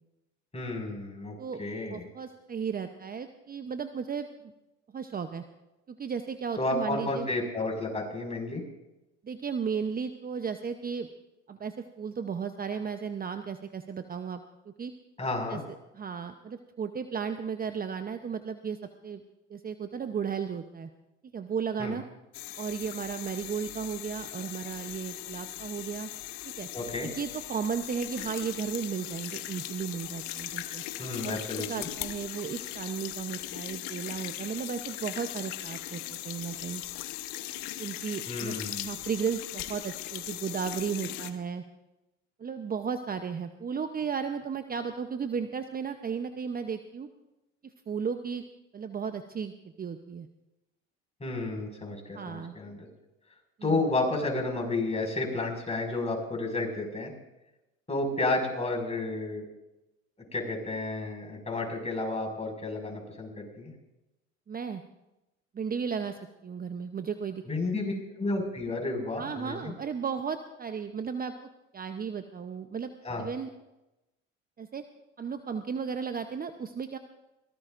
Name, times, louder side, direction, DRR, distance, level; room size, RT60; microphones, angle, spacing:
voice 1, 0.5-2.0 6.6-8.6 15.2-15.6 21.8-21.9 26.7-27.1 31.0-31.9 38.3-39.0 51.2-52.9 53.6-57.1 57.9-59.5 60.3-63.7 67.5-69.7 73.0-73.3, left 2 dB, 20° left, 1 dB, 5.8 m, -31 dB
voice 2, 1.4-4.3 4.9-5.4 5.9-7.3 9.2-11.1 11.5-14.9 15.5-15.6 15.9-19.2 19.5-20.9 21.3-22.0 22.6-26.1 26.6-26.7 27.0-30.8 31.2-31.4 31.7-36.8 37.8-41.6 42.4-47.1 47.6-48.4 48.7-49.5 49.8-50.3 52.1-52.5 53.6-53.8 64.5-64.8 65.5-67.4 67.8-68.0 69.2-71.3 71.7-72.9 73.2-73.5 74.6-74.8 75.2-77.0, right 6 dB, 25° right, 9 dB, 0.8 m, -34 dB
sound 1, 22.3-41.3, left 15 dB, 70° left, 1.2 m, -39 dB
23.0 x 18.0 x 2.6 m, 0.97 s
hypercardioid pair, 70°, 34 cm